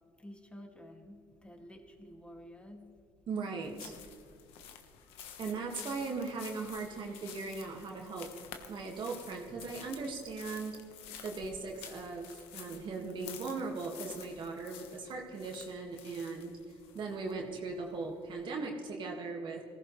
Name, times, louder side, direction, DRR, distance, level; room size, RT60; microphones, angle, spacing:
voice 1, 0.2-3.0, equal, 10° left, 3 dB, 2.3 m, -51 dB
voice 2, 3.3-4.0 5.4-8.3 8.7-10.8 11.2-19.6, right 4 dB, 55° right, 0 dB, 2.0 m, -39 dB
sound 1, 3.6-18.5, left 8 dB, 80° left, 1.3 m, -51 dB
19.0 x 15.5 x 3.3 m, 2.4 s
supercardioid pair, 80°, 10 cm